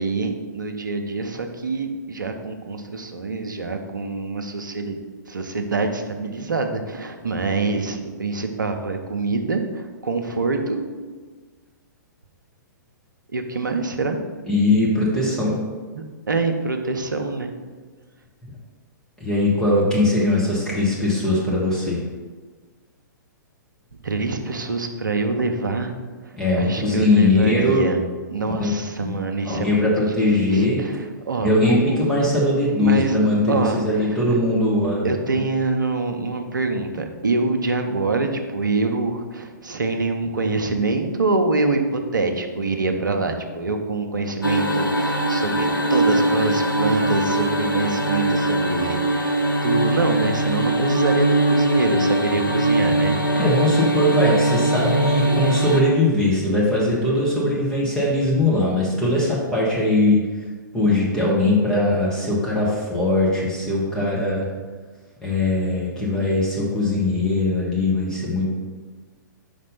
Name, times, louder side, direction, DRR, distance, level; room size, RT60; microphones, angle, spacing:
voice 1, 0.0-5.0 5.3-10.8 13.3-14.2 16.3-17.5 24.0-25.9 26.2-28.0 28.3-30.1 30.4-32.1 32.8-33.2 33.5-34.4 35.0-49.4 49.6-53.2, right 3 dB, 70° right, 5 dB, 0.8 m, -25 dB
voice 2, 14.4-15.6 19.2-22.0 26.3-27.8 28.6-28.7 29.0-29.2 29.4-30.8 31.4-35.1 53.3-60.3 60.7-64.5 65.2-68.5, left 2 dB, 5° left, -7 dB, 1.2 m, -20 dB
sound 1, 44.4-55.8, right 1 dB, 85° left, 0.8 m, -21 dB
5.2 x 4.2 x 5.4 m, 1.4 s
figure-of-eight pair, 115°, 11 cm